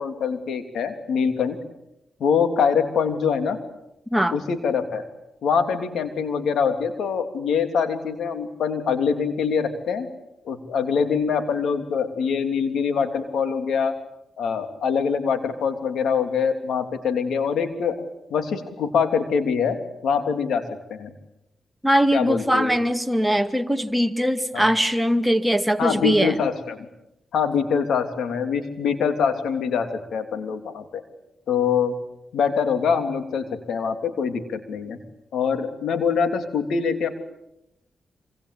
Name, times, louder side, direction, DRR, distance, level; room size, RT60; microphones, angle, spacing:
voice 1, 0.0-1.6 2.2-3.6 4.3-5.0 5.4-10.1 10.4-13.9 14.4-19.8 20.0-20.6 20.9-21.1 22.1-22.8 24.5-24.7 25.8-26.9 27.3-31.0 31.5-31.9 32.3-35.0 35.3-37.1, left 6 dB, 85° left, 8 dB, 3.2 m, -24 dB
voice 2, 21.8-26.4, equal, ahead, 5 dB, 2.2 m, -21 dB
26.5 x 25.0 x 8.5 m, 0.85 s
cardioid pair, 60°, 0 cm